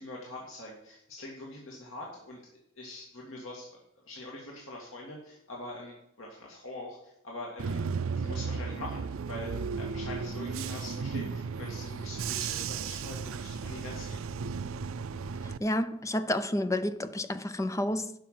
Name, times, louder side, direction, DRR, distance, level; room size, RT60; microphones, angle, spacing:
voice 1, 0.0-2.4 2.8-3.8 4.1-7.8 8.2-14.2, left 1 dB, 75° left, 2.3 m, -43 dB
Bus / Engine, 7.6-15.6, right 5 dB, 85° right, 0.5 m, -35 dB
voice 2, 15.6-18.1, left 1 dB, 15° left, 0.5 m, -30 dB
11.5 x 5.8 x 7.6 m
head